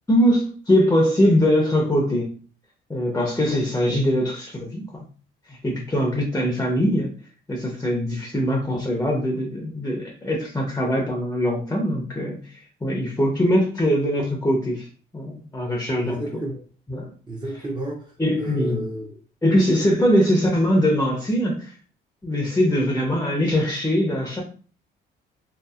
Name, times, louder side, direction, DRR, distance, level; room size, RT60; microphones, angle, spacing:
voice 1, 0.1-2.3 2.9-5.0 5.5-7.1 7.5-14.9 15.1-16.2 16.9-17.1 18.2-18.9 19.4-21.7 22.2-24.4, equal, 10° left, 0 dB, 0.7 m, -22 dB
voice 2, 16.0-16.6 17.3-19.2, right 1 dB, 20° right, -1 dB, 0.8 m, -32 dB
2.7 x 2.5 x 2.4 m, 0.40 s
cardioid pair, 90°, 20 cm